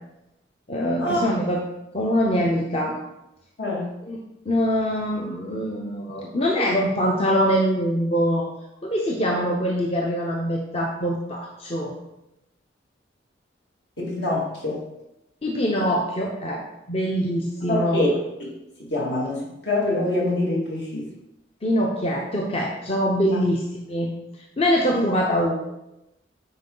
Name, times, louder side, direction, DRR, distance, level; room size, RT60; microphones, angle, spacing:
voice 1, 0.7-1.6 1.9-3.0 4.1-4.2 4.5-8.5 8.8-11.9 15.4-16.6 16.9-18.0 21.6-24.1 24.6-25.6, equal, 30° left, 0 dB, 0.7 m, -23 dB
voice 2, 3.6-3.9 14.0-14.8 17.7-18.5 18.8-21.1 24.9-25.1, left 1 dB, 65° left, -4 dB, 2.2 m, -25 dB
9.4 x 4.5 x 3.9 m, 0.90 s
head